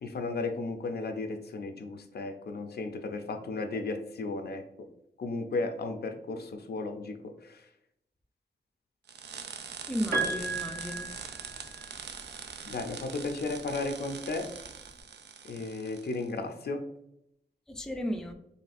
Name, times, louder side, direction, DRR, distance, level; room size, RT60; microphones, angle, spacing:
voice 1, 0.0-4.9 5.2-7.7 12.6-14.5 15.4-16.9, left 3 dB, 70° left, 0.5 m, -35 dB
sound 1, 9.1-16.3, right 6 dB, 80° right, 0.4 m, -43 dB
voice 2, 9.9-11.1 17.7-18.3, equal, 5° left, 0.4 m, -34 dB
Piano, 10.1-12.1 13.4-13.5, right 3 dB, 55° right, 1.0 m, -34 dB
4.2 x 3.2 x 2.5 m
wide cardioid pair, 135°, 17 cm